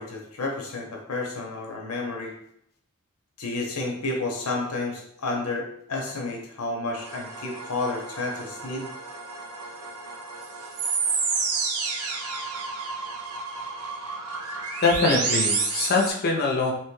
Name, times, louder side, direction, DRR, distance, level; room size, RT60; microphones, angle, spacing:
voice 1, 0.0-2.3 3.4-8.9, left 2 dB, 85° left, 0 dB, 0.7 m, -31 dB
sound 1, 7.0-16.1, right 4 dB, 85° right, 0.5 m, -30 dB
voice 2, 14.8-16.7, left 3 dB, 45° left, -1 dB, 0.6 m, -23 dB
2.9 x 2.2 x 3.1 m, 0.69 s
head